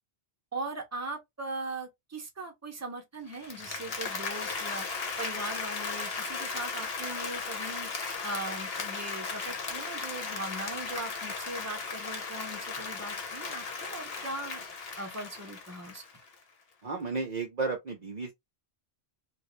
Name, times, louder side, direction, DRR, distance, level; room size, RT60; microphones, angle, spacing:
voice 1, 0.5-4.9 5.2-7.9 8.2-14.6 15.0-16.0, right 2 dB, 15° right, 0.8 m, -39 dB
Applause, 3.3-16.3, left 4 dB, 65° left, 1.1 m, -36 dB
voice 2, 16.8-18.3, right 4 dB, 45° right, 0.7 m, -33 dB
3.1 x 2.5 x 3.1 m
omnidirectional pair, 1.1 m